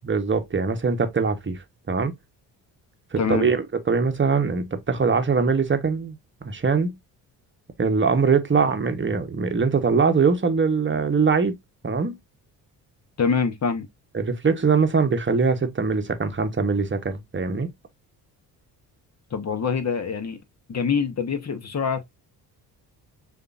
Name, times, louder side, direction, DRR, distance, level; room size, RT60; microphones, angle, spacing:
voice 1, 0.1-2.1 3.1-6.2 6.4-7.0 7.8-11.5 11.8-12.2 14.1-17.7, right 5 dB, 25° right, 1.0 m, -22 dB
voice 2, 3.2-3.5 13.2-13.9 19.3-20.4 20.7-22.0, left 6 dB, 35° left, 1.0 m, -25 dB
6.6 x 2.7 x 2.5 m
hypercardioid pair, 55°, 47 cm